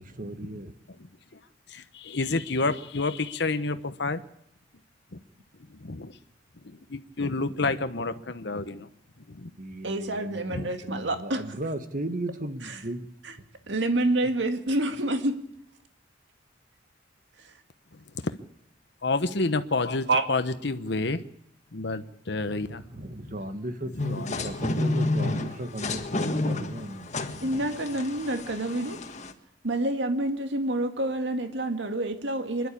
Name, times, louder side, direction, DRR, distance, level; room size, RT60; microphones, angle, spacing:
voice 1, 0.1-0.7 9.6-13.1 22.9-27.2, right 1 dB, 45° right, 9 dB, 1.6 m, -36 dB
voice 2, 1.7-4.2 5.1-5.2 5.7-6.1 6.6-8.9 9.3-9.5 10.5-10.7 18.1-18.3 19.0-21.2 21.7-22.8 23.2-23.3 23.8-24.4, left 3 dB, 65° left, 9 dB, 1.0 m, -29 dB
voice 3, 9.8-11.4 12.6-12.8 13.2-13.4 13.7-15.4 17.4-17.5 20.1-20.2 27.4-29.0 29.6-32.7, right 1 dB, 70° right, 7 dB, 2.1 m, -28 dB
sound 1, 24.0-29.3, left 2 dB, 40° left, 1.7 m, -30 dB
26.0 x 11.5 x 8.6 m, 0.77 s
head